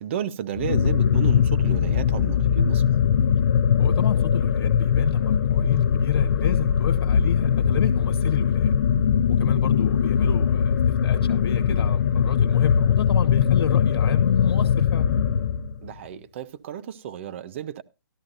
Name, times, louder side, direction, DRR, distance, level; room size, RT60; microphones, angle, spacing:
voice 1, 0.0-2.8 15.8-17.8, right 10 dB, 30° right, 0.6 m, -32 dB
sound 1, 0.6-15.9, left 8 dB, 50° left, 0.6 m, -21 dB
voice 2, 3.8-8.7 9.3-15.1, left 7 dB, 75° left, 1.2 m, -30 dB
13.0 x 12.5 x 2.6 m
hypercardioid pair, 160°, 13 cm